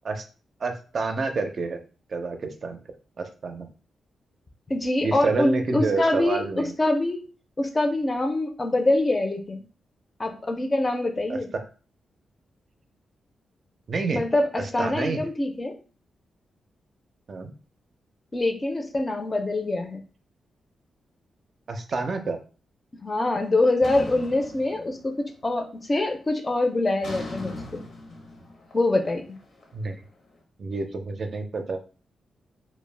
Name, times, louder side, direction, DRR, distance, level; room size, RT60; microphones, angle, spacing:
voice 1, 0.6-1.8 2.1-2.8 3.2-3.7 5.0-6.7 11.3-11.6 13.9-14.2 14.8-15.2 17.3-17.5 21.7-22.4 29.7-30.0 30.6-31.8, right 3 dB, 55° right, 6 dB, 0.4 m, -28 dB
voice 2, 4.7-7.2 7.6-9.6 10.2-11.5 14.1-15.8 18.3-20.0 23.0-25.1 25.4-27.8 28.7-29.2, left 2 dB, 30° left, 5 dB, 0.5 m, -24 dB
sound 1, 23.8-25.4 25.7-26.1 27.0-30.1, left 2 dB, 70° left, 0.7 m, -39 dB
2.1 x 2.0 x 3.2 m, 0.37 s
cardioid pair, 75°, 0 cm